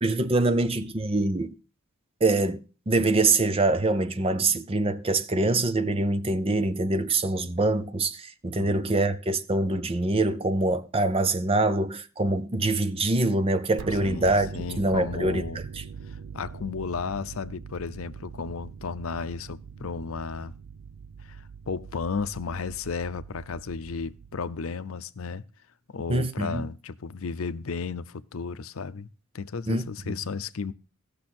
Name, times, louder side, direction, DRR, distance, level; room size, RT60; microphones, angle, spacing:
voice 1, 0.0-1.5 2.2-2.6 2.9-14.5 14.8-15.4 26.1-26.6 29.7-30.2, right 2 dB, 25° right, 0.6 m, -24 dB
voice 2, 8.6-9.0 14.0-15.6 16.1-20.5 21.2-25.4 25.9-29.1 29.3-30.7, left 5 dB, 70° left, 0.6 m, -34 dB
sound 1, 13.8-24.8, right 6 dB, 70° right, 0.5 m, -42 dB
16.0 x 6.8 x 4.3 m
head